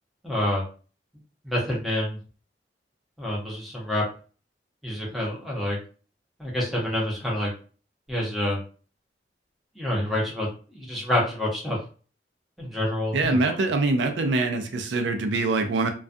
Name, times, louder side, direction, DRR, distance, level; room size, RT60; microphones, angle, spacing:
voice 1, 0.2-0.6 1.4-2.2 3.2-4.0 4.8-5.8 6.4-7.5 8.1-8.6 9.8-11.8 12.6-13.4, left 1 dB, ahead, -4 dB, 0.7 m, -27 dB
voice 2, 13.1-15.9, right 3 dB, 75° right, 5 dB, 0.4 m, -24 dB
2.3 x 2.2 x 2.5 m, 0.38 s
head